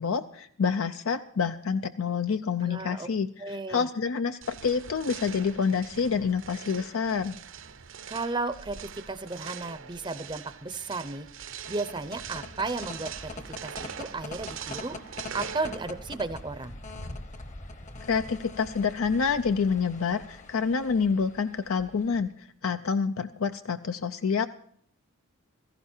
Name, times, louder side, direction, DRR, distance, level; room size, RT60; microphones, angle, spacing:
voice 1, 0.0-7.3 18.0-24.5, left 5 dB, 75° left, 10 dB, 0.5 m, -28 dB
voice 2, 2.6-3.1 3.4-3.9 8.1-11.3 11.7-16.7, right 3 dB, 20° right, 11 dB, 0.6 m, -34 dB
sound 1, 4.4-16.3, right 7 dB, 60° right, 0.7 m, -43 dB
sound 2, 11.5-22.3, left 2 dB, 35° left, 1.0 m, -43 dB
16.5 x 15.0 x 4.4 m, 0.64 s
head